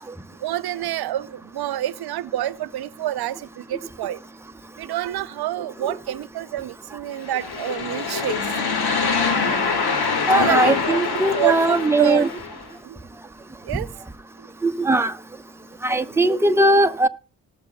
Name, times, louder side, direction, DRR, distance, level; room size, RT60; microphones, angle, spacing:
voice 1, 0.4-4.2 4.8-8.5 10.3-11.0 11.3-12.3 12.8-13.0 13.6-13.9, right 13 dB, 70° right, 0.5 m, -28 dB
sound 1, 7.2-12.6, left 5 dB, 65° left, 1.8 m, -24 dB
voice 2, 10.3-12.3 14.6-15.1 15.8-17.1, right 2 dB, 5° right, 0.7 m, -19 dB
19.0 x 6.6 x 2.2 m
supercardioid pair, 45°, 41 cm